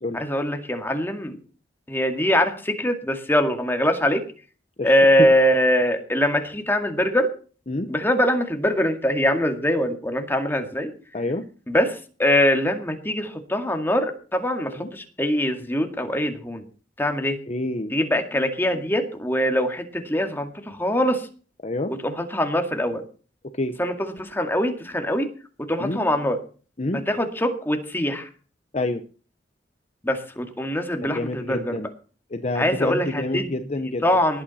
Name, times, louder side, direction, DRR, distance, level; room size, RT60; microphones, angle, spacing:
voice 1, 0.1-1.4 1.9-4.2 4.8-7.3 7.9-10.9 11.7-16.6 17.0-17.4 17.9-21.2 22.0-23.0 23.8-25.3 25.7-26.4 26.9-28.3 30.0-31.8 32.6-33.5 34.0-34.4, equal, 10° left, 5 dB, 2.1 m, -23 dB
voice 2, 11.1-11.5 14.7-14.9 17.5-17.9 21.6-21.9 23.5-23.8 25.8-26.0 26.8-27.0 28.7-29.0 31.0-31.9 32.3-34.0, left 2 dB, 40° left, 9 dB, 0.9 m, -27 dB
19.0 x 9.0 x 4.2 m, 0.38 s
head